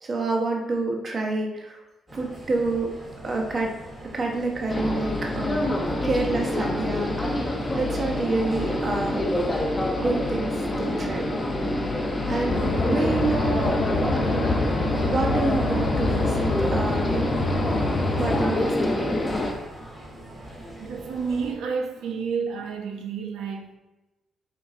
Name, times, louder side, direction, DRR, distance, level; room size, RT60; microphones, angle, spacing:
voice 1, 0.0-1.8 2.1-2.9 3.2-3.7 4.1-5.7 6.0-7.4 7.8-9.3 10.0-11.3 12.3-14.1 15.1-17.2 18.2-19.2, right 2 dB, 30° right, 1 dB, 1.1 m, -28 dB
sound 1, 2.1-21.5, right 1 dB, 15° right, 1.9 m, -43 dB
sound 2, 4.7-19.5, left 1 dB, 15° left, 0.9 m, -27 dB
sound 3, 12.5-18.5, left 2 dB, 40° left, 1.3 m, -26 dB
voice 2, 20.8-23.8, right 5 dB, 80° right, 3 dB, 0.9 m, -30 dB
7.7 x 5.0 x 3.7 m, 1.0 s
cardioid pair, 155°, 0 cm